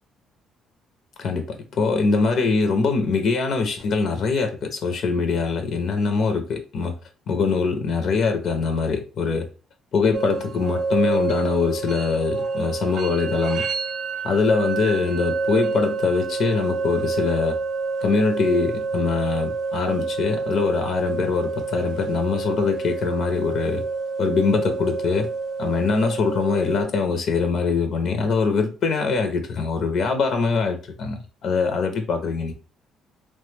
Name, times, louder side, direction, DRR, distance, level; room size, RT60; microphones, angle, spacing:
voice 1, 1.2-6.9 7.3-9.5 9.9-13.7 14.2-17.6 18.0-23.8 24.2-25.3 25.6-32.5, left 4 dB, 60° left, 6 dB, 0.5 m, -23 dB
sound 1, 10.1-26.8, right 4 dB, 65° right, 0.4 m, -28 dB
3.1 x 2.1 x 3.2 m, 0.35 s
cardioid pair, 125°, 0 cm